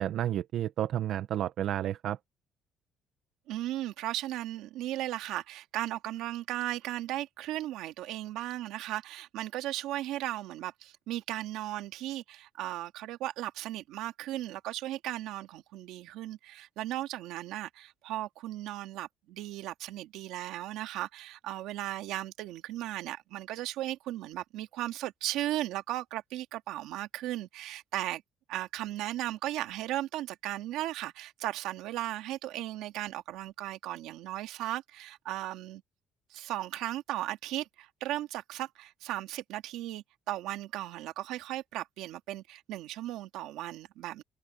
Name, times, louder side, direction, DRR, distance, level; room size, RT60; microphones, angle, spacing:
voice 1, 0.0-2.2, right 11 dB, 55° right, 0.8 m, -31 dB
voice 2, 3.5-28.2 28.5-35.8 36.3-44.2, right 14 dB, 85° right, 2.0 m, -36 dB
cardioid pair, 150°, 0 cm